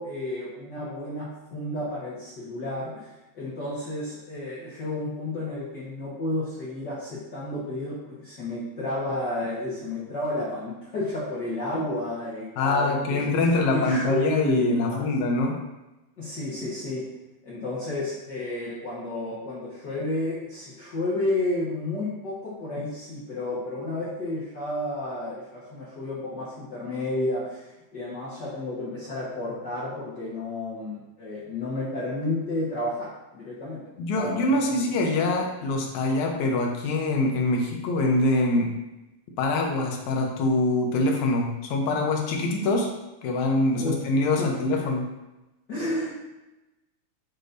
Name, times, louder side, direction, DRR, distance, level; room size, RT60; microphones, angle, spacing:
voice 1, 0.0-13.3 13.7-15.0 16.2-17.0 17.4-27.6 27.9-33.1 33.3-33.8 34.1-34.9 43.7-44.0 44.3-44.5 45.7-46.1, left 2 dB, 55° left, -8 dB, 1.2 m, -31 dB
voice 2, 12.6-15.6 34.0-38.7 39.4-42.9 43.2-45.0, left 2 dB, 75° left, 1 dB, 2.1 m, -24 dB
6.6 x 6.5 x 2.6 m, 1.0 s
omnidirectional pair, 3.6 m